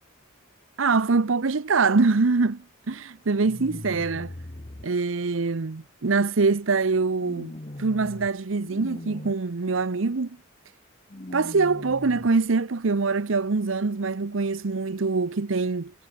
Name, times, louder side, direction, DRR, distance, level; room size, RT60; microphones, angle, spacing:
voice 1, 0.8-4.3 4.8-7.5 7.8-10.4 11.3-15.9, right 4 dB, 75° right, 0.8 m, -24 dB
sound 1, 3.4-4.8 7.2-8.3 8.6-9.3 11.1-12.3, left 1 dB, 35° left, 1.2 m, -39 dB
head